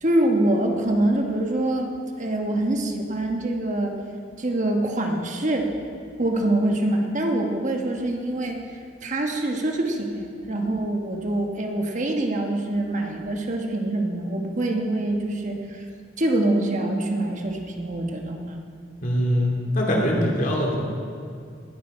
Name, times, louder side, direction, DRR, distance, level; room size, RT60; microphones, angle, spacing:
voice 1, 0.0-4.0 4.4-5.7 6.2-8.6 9.0-15.8 16.2-18.6, right 1 dB, 40° right, 2 dB, 1.3 m, -25 dB
voice 2, 19.0-20.8, equal, 45° left, -2 dB, 2.6 m, -22 dB
19.5 x 10.5 x 4.3 m, 2.3 s
head